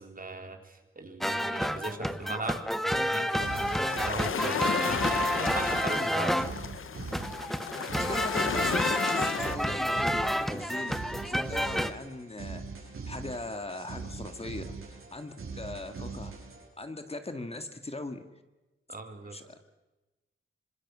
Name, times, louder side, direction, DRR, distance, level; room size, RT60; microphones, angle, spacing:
voice 1, 0.0-6.5 18.9-19.4, right 3 dB, 40° right, 5 dB, 3.7 m, -39 dB
sound 1, 1.2-6.5 7.1-11.9, equal, ahead, 1.2 m, -30 dB
sound 2, 3.2-16.7, right 4 dB, 80° right, 7.8 m, -42 dB
sound 3, 3.4-9.6, left 7 dB, 75° left, 0.8 m, -34 dB
voice 2, 7.9-16.3 16.8-18.2 19.3-19.6, left 2 dB, 30° left, 7 dB, 1.9 m, -40 dB
26.5 x 26.0 x 6.2 m, 1.1 s
wide cardioid pair, 110°, 21 cm